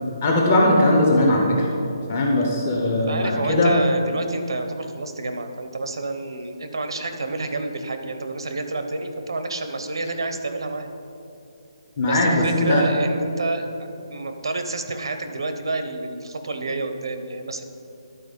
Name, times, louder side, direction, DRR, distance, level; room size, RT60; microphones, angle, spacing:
voice 1, 0.2-1.7 2.1-3.7 12.0-12.9, left 1 dB, 20° left, -1 dB, 1.0 m, -19 dB
voice 2, 3.1-10.9 12.0-17.7, right 2 dB, 75° right, 7 dB, 0.8 m, -29 dB
11.5 x 4.3 x 5.2 m, 2.7 s
hypercardioid pair, 180°, 2 cm